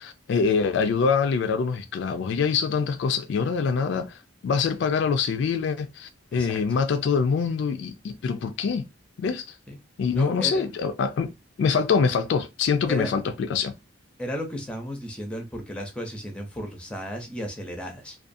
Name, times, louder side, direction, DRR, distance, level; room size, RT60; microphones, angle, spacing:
voice 1, 0.0-8.8 9.2-9.4 10.0-11.3 11.6-13.7, left 5 dB, 65° left, 0.3 m, -25 dB
voice 2, 10.1-10.7 12.9-13.1 14.2-18.2, equal, 5° left, 0.5 m, -34 dB
2.4 x 2.3 x 2.5 m
head